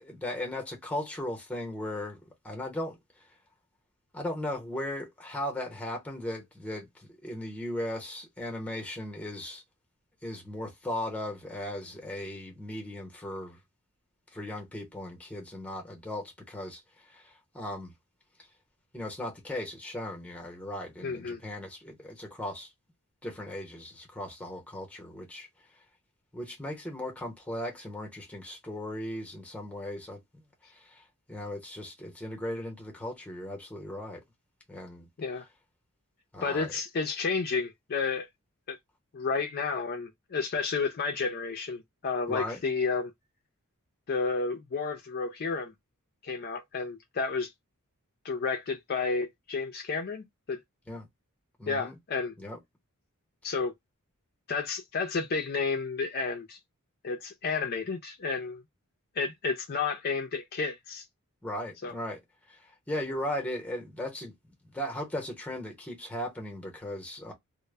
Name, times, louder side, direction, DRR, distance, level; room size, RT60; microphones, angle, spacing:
voice 1, 0.0-3.0 4.1-9.6 10.2-13.6 14.3-16.8 17.1-17.9 18.9-22.7 23.2-25.5 26.3-30.4 30.7-31.0 31.3-34.2 34.7-35.1 36.3-36.7 42.3-42.6 50.9-51.1 51.6-51.9 52.4-52.6 61.4-62.2 62.5-62.6 62.9-64.4 64.6-67.3, left 1 dB, 5° left, 0.8 m, -37 dB
voice 2, 21.0-21.4 35.2-35.5 36.4-38.3 38.7-38.8 39.1-43.1 44.1-45.7 46.2-47.5 48.2-50.6 51.7-52.3 53.4-53.7 54.5-56.6 57.0-58.6 59.2-61.1 61.8-61.9, left 4 dB, 45° left, 0.4 m, -31 dB
2.1 x 2.0 x 3.2 m
head